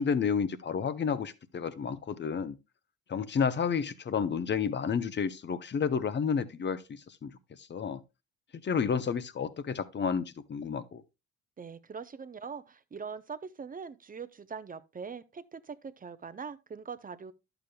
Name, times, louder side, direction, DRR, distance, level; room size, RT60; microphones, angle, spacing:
voice 1, 0.0-2.6 3.1-7.3 7.7-8.0 8.6-11.0, left 6 dB, 35° left, 0.8 m, -31 dB
voice 2, 11.6-17.3, right 5 dB, 30° right, 0.6 m, -42 dB
11.0 x 6.9 x 2.2 m
cardioid pair, 90°, 30 cm